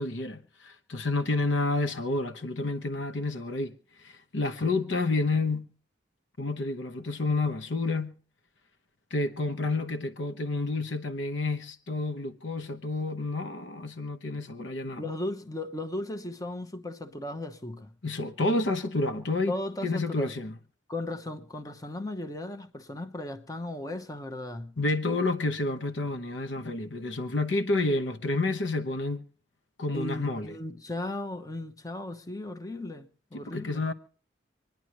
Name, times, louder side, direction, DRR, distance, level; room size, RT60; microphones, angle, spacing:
voice 1, 0.0-3.7 4.0-5.7 6.4-8.1 9.1-15.1 18.0-19.5 19.8-20.5 24.8-29.2 29.8-30.5 33.5-33.9, left 2 dB, 85° left, 1.1 m, -29 dB
voice 2, 15.0-17.9 19.5-20.3 20.9-24.8 29.9-33.8, left 1 dB, 20° left, 0.9 m, -36 dB
26.0 x 10.5 x 3.0 m
head